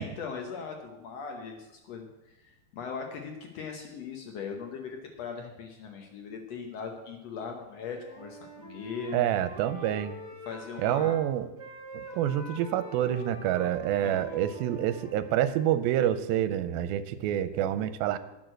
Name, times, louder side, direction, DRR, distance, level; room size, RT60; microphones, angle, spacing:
voice 1, 0.0-9.3 9.7-9.9 10.5-11.2 13.5-13.7 14.0-14.4, left 5 dB, 85° left, 3 dB, 1.4 m, -40 dB
Wind instrument woodwind instrument, 7.7-11.2 11.6-15.8, equal, 30° right, 0.8 m, -46 dB
voice 2, 9.1-10.2 10.8-11.5 11.9-18.2, right 11 dB, 80° right, 12 dB, 2.4 m, -27 dB
10.5 x 6.5 x 7.6 m, 1.0 s
omnidirectional pair, 4.3 m